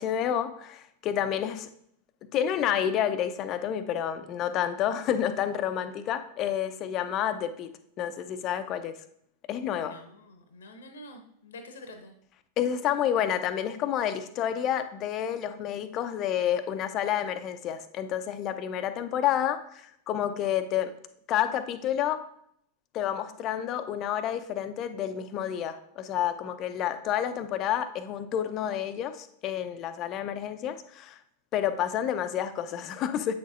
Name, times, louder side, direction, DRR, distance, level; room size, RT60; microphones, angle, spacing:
voice 1, 0.0-1.7 2.3-7.7 8.0-8.9 9.5-9.9 12.6-20.9 21.3-22.2 22.9-31.2 31.5-33.4, left 10 dB, 35° left, 11 dB, 0.5 m, -29 dB
voice 2, 9.8-12.1, left 1 dB, 65° left, 7 dB, 0.9 m, -47 dB
8.4 x 6.5 x 2.5 m, 0.71 s
figure-of-eight pair, 90°, 0 cm